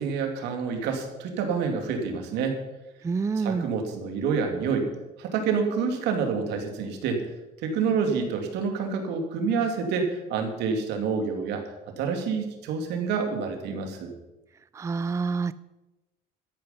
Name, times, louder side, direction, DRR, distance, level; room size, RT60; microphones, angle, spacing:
voice 1, 0.0-2.6 3.4-4.9 5.2-7.2 7.6-11.6 12.0-14.1, right 5 dB, 85° right, 4 dB, 2.5 m, -28 dB
voice 2, 3.0-3.7 14.7-15.5, right 4 dB, 15° right, 16 dB, 0.4 m, -27 dB
13.5 x 11.0 x 5.3 m, 1.0 s
cardioid pair, 110°, 17 cm